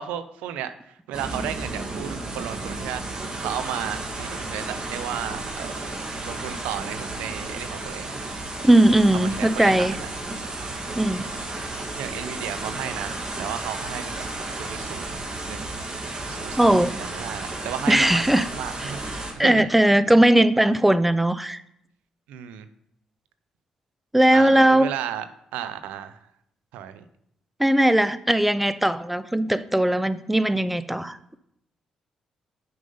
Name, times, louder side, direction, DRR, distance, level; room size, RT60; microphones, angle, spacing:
voice 1, 0.0-6.0 6.3-8.2 9.1-10.1 12.0-14.2 14.5-15.2 15.5-15.7 16.3-16.7 17.1-19.7 22.3-22.7 24.3-26.2 26.7-27.0, right 10 dB, 90° right, 12 dB, 0.5 m, -34 dB
sound 1, 1.1-19.3, right 2 dB, 35° right, 1.6 m, -33 dB
voice 2, 8.6-10.0 11.0-11.3 16.6-17.0 17.9-18.5 18.8-18.9 19.4-21.6 24.1-24.9 27.6-31.2, right 1 dB, 5° right, 14 dB, 0.4 m, -19 dB
6.5 x 5.3 x 5.4 m, 0.75 s
supercardioid pair, 65°, 2 cm